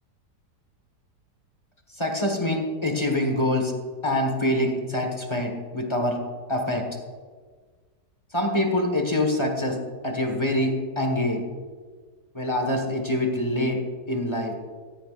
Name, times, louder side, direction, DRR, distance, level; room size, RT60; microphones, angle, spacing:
voice 1, 2.0-3.7 4.0-6.2 6.5-6.8 8.3-9.8 10.0-11.4 12.3-13.8 14.1-14.5, left 1 dB, 15° left, 2 dB, 1.6 m, -25 dB
16.0 x 15.0 x 2.6 m, 1.5 s
omnidirectional pair, 1.8 m